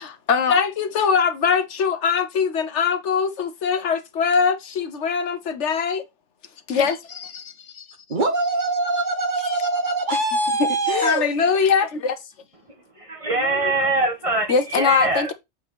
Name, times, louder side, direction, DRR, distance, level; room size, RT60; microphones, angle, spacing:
voice 1, 0.3-6.0 6.7-6.9 10.9-12.1 14.5-15.3, left 6 dB, 70° left, 1.2 m, -21 dB
voice 2, 8.1-11.3, right 2 dB, 40° right, 1.3 m, -23 dB
voice 3, 13.0-15.3, right 2 dB, 25° right, 1.5 m, -23 dB
7.5 x 4.3 x 4.2 m
omnidirectional pair, 1.3 m